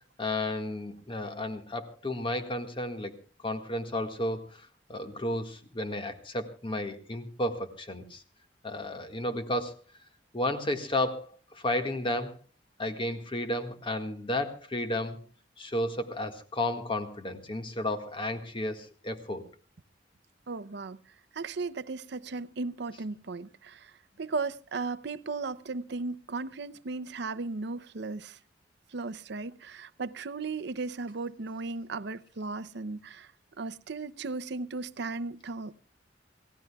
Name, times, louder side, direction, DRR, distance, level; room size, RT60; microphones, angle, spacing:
voice 1, 0.2-3.1 3.4-8.2 8.6-9.8 10.3-12.4 12.8-15.2 15.6-19.4, left 1 dB, 30° left, 1.7 m, -33 dB
voice 2, 20.5-21.0 21.3-23.9 24.2-28.4 28.9-33.3 33.6-35.7, right 3 dB, 70° right, 0.6 m, -36 dB
28.5 x 16.0 x 2.3 m
head